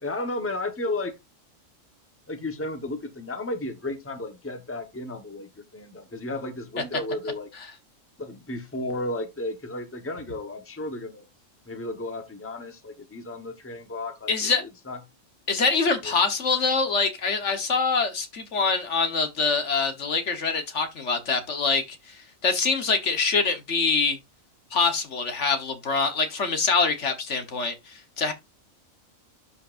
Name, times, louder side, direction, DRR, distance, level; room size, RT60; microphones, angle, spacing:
voice 1, 0.0-1.1 2.3-7.5 8.2-11.2 11.7-15.0 16.0-16.2, left 2 dB, 10° left, 1.1 m, -33 dB
voice 2, 14.3-14.6 15.5-22.2 22.4-24.2 24.7-28.3, left 4 dB, 65° left, 1.5 m, -24 dB
11.5 x 5.7 x 2.5 m
omnidirectional pair, 1.4 m